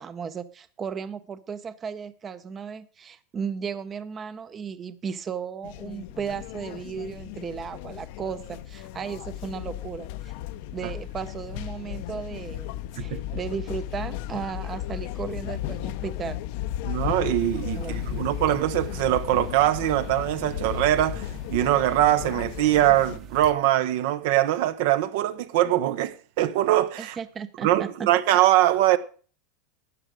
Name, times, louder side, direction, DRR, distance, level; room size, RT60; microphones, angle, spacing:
voice 1, 0.0-10.3 10.7-16.4 17.8-17.9 27.0-28.1, right 6 dB, 25° right, 0.7 m, -35 dB
sound 1, 5.6-23.2, left 13 dB, 65° left, 0.7 m, -35 dB
voice 2, 16.8-27.2 27.6-29.0, right 13 dB, 70° right, 0.9 m, -22 dB
sound 2, 17.4-23.5, right 6 dB, 40° right, 1.2 m, -43 dB
12.5 x 9.0 x 5.1 m
supercardioid pair, 135°, 0 cm